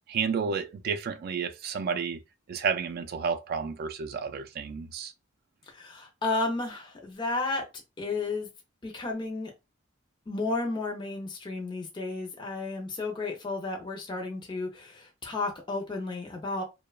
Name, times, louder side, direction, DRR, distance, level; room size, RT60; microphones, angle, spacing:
voice 1, 0.1-2.2 2.5-5.1, right 6 dB, 50° right, 0.3 m, -31 dB
voice 2, 5.7-7.6 8.0-8.5 8.8-9.5 10.3-16.6, left 3 dB, 25° left, 0.4 m, -32 dB
2.8 x 2.1 x 2.2 m
head